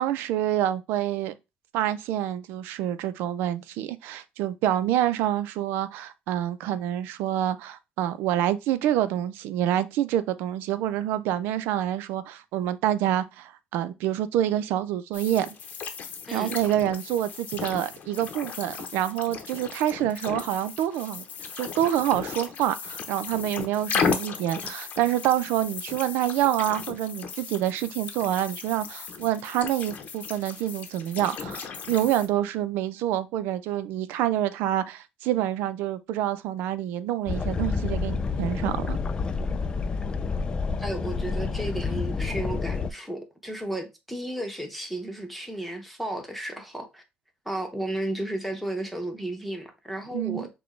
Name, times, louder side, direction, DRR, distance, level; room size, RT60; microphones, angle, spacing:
voice 1, 0.0-1.3 1.7-15.6 16.3-21.2 21.6-39.0 50.1-50.5, right 12 dB, 85° right, 0.5 m, -27 dB
sound 1, 15.1-32.3, left 6 dB, 45° left, 0.8 m, -35 dB
sound 2, 37.3-42.9, left 4 dB, 25° left, 0.4 m, -29 dB
voice 2, 40.8-47.0 47.4-50.5, right 1 dB, ahead, 1.0 m, -33 dB
6.1 x 2.3 x 3.2 m
cardioid pair, 135°, 3 cm